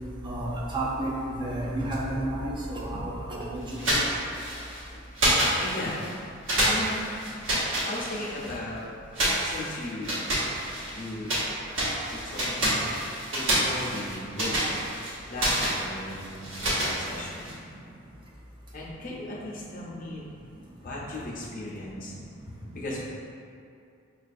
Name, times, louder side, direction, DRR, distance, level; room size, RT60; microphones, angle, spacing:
voice 1, 0.2-3.6 3.9-4.0, right 1 dB, 25° right, -4 dB, 0.5 m, -31 dB
sound 1, 3.7-4.8 5.2-6.1 6.5-8.6 9.1-11.5 11.7-17.5, right 1 dB, 65° right, 1.0 m, -28 dB
voice 2, 5.6-6.0 6.6-7.1 7.8-8.9 9.4-10.2 10.9-11.3 12.1-12.9 13.3-14.6 15.3-17.5 18.7-20.3 20.7-22.1 22.7-23.1, left 1 dB, 40° left, -5 dB, 0.6 m, -37 dB
5.5 x 2.3 x 2.5 m, 2.4 s
head